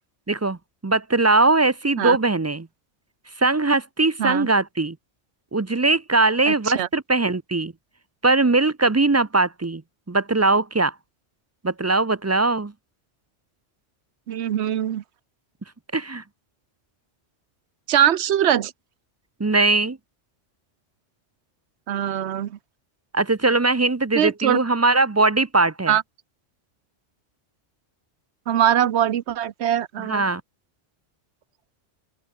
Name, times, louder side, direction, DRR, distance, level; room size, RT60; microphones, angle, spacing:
voice 1, 0.3-0.6 0.8-2.7 3.4-5.0 5.5-7.7 8.2-9.8 10.1-10.9 11.6-12.7 15.9-16.2 19.4-20.0 23.1-25.9 30.0-30.4, right 3 dB, 25° right, 0.3 m, -20 dB
voice 2, 6.5-6.9 14.3-15.0 17.9-18.7 21.9-22.6 24.2-24.6 25.9-26.0 28.5-30.2, right 10 dB, 65° right, 1.0 m, -22 dB
open air
omnidirectional pair, 1.2 m